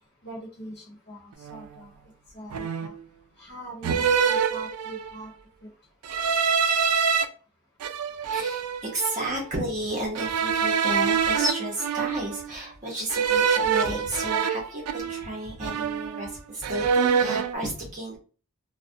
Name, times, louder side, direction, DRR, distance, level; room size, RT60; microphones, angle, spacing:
voice 1, 0.2-1.9 2.3-2.9 3.4-5.3 5.6-5.7, right 2 dB, 50° left, -4 dB, 1.0 m, -42 dB
sound 1, 1.4-1.7 2.5-3.1 3.8-5.2 6.0-7.2 7.8-9.4 10.1-12.5 13.1-15.4 15.6-16.3 16.6-17.5, right 6 dB, 90° right, 0.3 m, -25 dB
voice 2, 8.2-18.2, right 1 dB, 35° right, -2 dB, 0.7 m, -32 dB
2.4 x 2.1 x 2.6 m, 0.37 s
head